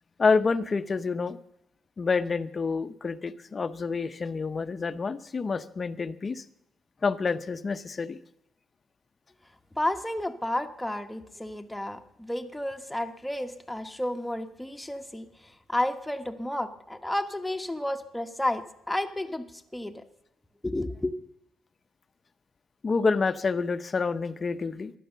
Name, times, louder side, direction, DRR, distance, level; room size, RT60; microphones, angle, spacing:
voice 1, 0.2-1.4 2.0-6.4 7.0-8.2 22.8-24.9, left 4 dB, 35° left, 12 dB, 0.8 m, -28 dB
voice 2, 9.7-15.3 15.7-19.4 19.7-20.0 20.6-21.1, left 1 dB, 5° left, 5 dB, 1.3 m, -31 dB
15.0 x 11.0 x 6.8 m, 0.82 s
cardioid pair, 90°, 0 cm